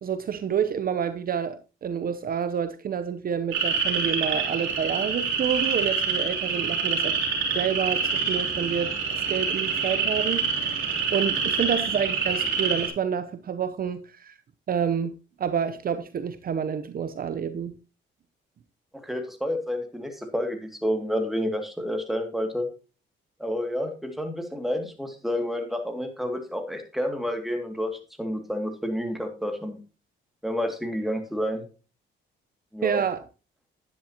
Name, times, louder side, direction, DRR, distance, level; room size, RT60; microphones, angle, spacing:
voice 1, 0.0-7.2 7.5-14.4 14.7-17.8 32.8-33.2, right 7 dB, 50° right, 0.7 m, -28 dB
sound 1, 3.5-12.9, right 5 dB, 80° right, 3.1 m, -26 dB
voice 2, 18.9-22.7 23.4-29.8 30.4-31.6 32.7-33.0, equal, ahead, 2.3 m, -29 dB
10.5 x 10.5 x 2.9 m
cardioid pair, 90°, 20 cm